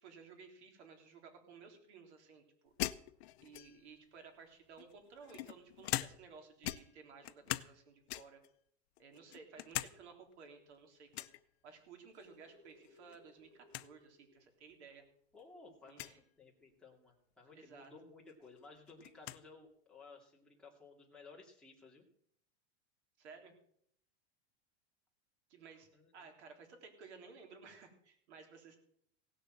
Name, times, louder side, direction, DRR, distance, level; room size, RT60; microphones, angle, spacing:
voice 1, 0.0-2.7 3.4-8.4 9.0-11.3 11.6-15.0 15.8-16.2 17.5-17.9 23.2-23.5 25.5-28.8, right 5 dB, 85° right, 4 dB, 3.7 m, -56 dB
sound 1, 2.8-4.0 4.8-6.4 6.6-7.8 8.1-8.5 9.0-9.9 10.3-10.4 11.1-11.4 12.8-13.2 13.4-13.5 13.7-13.9 14.7-14.8 15.9-16.2 17.8-17.9 18.3-19.4, left 16 dB, 70° left, 0.7 m, -41 dB
sound 2, 11.8-14.5 14.9-15.0 15.3-15.6 16.7-16.8, left 2 dB, 20° right, 5.9 m, -65 dB
voice 2, 15.3-22.1 25.9-26.3, left 3 dB, 5° left, -3 dB, 2.5 m, -57 dB
17.0 x 6.8 x 7.6 m, 0.68 s
supercardioid pair, 165°, 33 cm